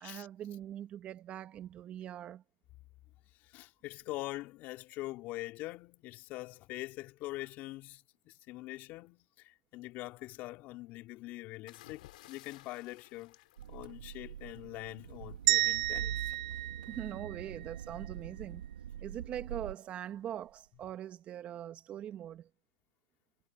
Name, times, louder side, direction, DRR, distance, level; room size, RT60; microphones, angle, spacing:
voice 1, 0.0-2.4 16.9-18.6 19.0-22.5, right 11 dB, 25° right, 1.9 m, -42 dB
voice 2, 3.4-16.3, left 18 dB, 35° left, 3.4 m, -44 dB
sound 1, 11.7-14.4 15.7-16.0, left 17 dB, 60° left, 5.5 m, -57 dB
sound 2, 13.6-19.7, right 9 dB, 80° right, 2.6 m, -44 dB
sound 3, 15.5-17.7, right 16 dB, 55° right, 0.9 m, -31 dB
hypercardioid pair, 135°, 5 cm